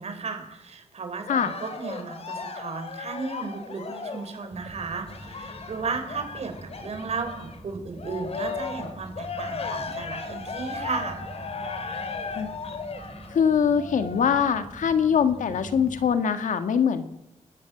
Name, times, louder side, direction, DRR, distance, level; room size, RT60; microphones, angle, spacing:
voice 1, 0.0-11.2, right 4 dB, 55° right, 7 dB, 4.4 m, -34 dB
Cheering, 1.3-7.6 8.0-14.6 15.2-15.3, left 4 dB, 55° left, 3.0 m, -36 dB
sound 1, 4.5-16.1, right 1 dB, 5° right, 4.3 m, -44 dB
voice 2, 13.3-17.0, left 7 dB, 90° left, 9 dB, 1.9 m, -23 dB
29.5 x 13.0 x 7.9 m, 0.89 s
wide cardioid pair, 140°, 13 cm